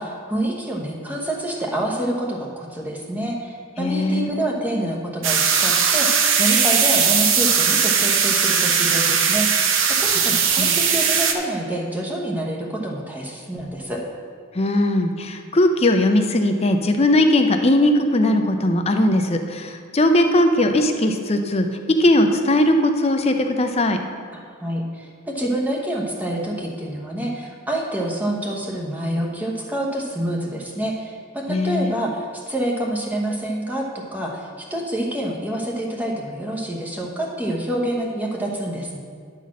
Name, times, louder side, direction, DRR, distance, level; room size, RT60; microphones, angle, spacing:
voice 1, 0.0-14.0 24.3-39.0, right 1 dB, 10° right, -1 dB, 1.0 m, -27 dB
voice 2, 3.8-4.3 10.0-10.8 14.5-24.0 31.5-31.9, left 1 dB, 30° left, 5 dB, 0.6 m, -19 dB
sound 1, 5.2-11.3, right 6 dB, 60° right, 0.8 m, -19 dB
10.5 x 4.1 x 7.4 m, 2.1 s
head